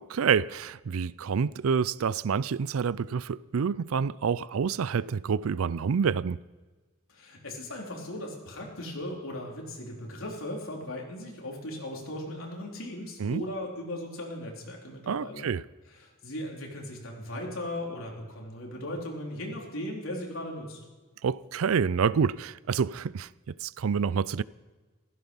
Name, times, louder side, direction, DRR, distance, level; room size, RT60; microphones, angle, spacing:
voice 1, 0.0-6.4 13.2-13.4 15.1-15.6 21.2-24.4, right 6 dB, 80° right, 0.4 m, -28 dB
voice 2, 7.1-15.5 16.0-20.8, left 1 dB, 75° left, 3.7 m, -37 dB
15.5 x 14.5 x 5.4 m
head